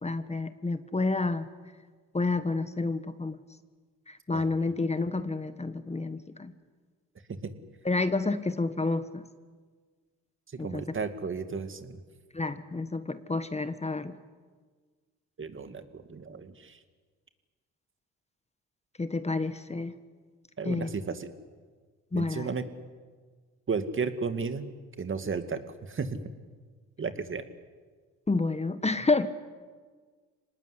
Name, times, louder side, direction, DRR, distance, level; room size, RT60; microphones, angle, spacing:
voice 1, 0.0-1.5 2.1-3.4 4.1-6.5 7.8-9.2 10.6-10.8 12.3-14.2 19.0-19.9 20.6-20.9 22.1-22.5 28.3-29.3, left 3 dB, 20° left, 11 dB, 1.4 m, -29 dB
voice 2, 4.3-4.7 7.3-7.5 10.5-12.0 15.4-16.8 20.6-21.3 22.1-22.6 23.7-24.7 25.0-25.6 25.9-26.2 27.0-27.4, right 5 dB, 40° right, 9 dB, 2.3 m, -34 dB
25.5 x 19.5 x 9.9 m, 1.5 s
supercardioid pair, 65°, 32 cm